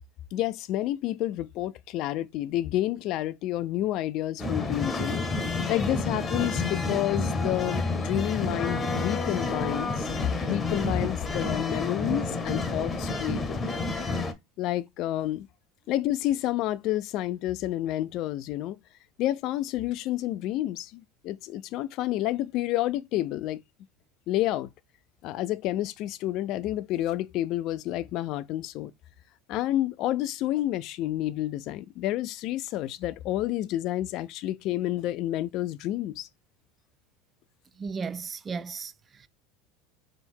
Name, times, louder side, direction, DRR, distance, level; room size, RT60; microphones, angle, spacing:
voice 1, 0.3-5.3 5.7-10.1 10.4-13.8 14.6-15.5 15.9-18.8 19.2-23.6 24.3-24.7 25.2-28.9 29.5-36.3, left 14 dB, 55° left, 0.4 m, -29 dB
sound 1, 4.4-14.3, left 3 dB, 20° left, 0.9 m, -29 dB
voice 2, 37.8-39.3, right 5 dB, 30° right, 0.3 m, -35 dB
3.6 x 2.8 x 4.4 m
hypercardioid pair, 90°, 0 cm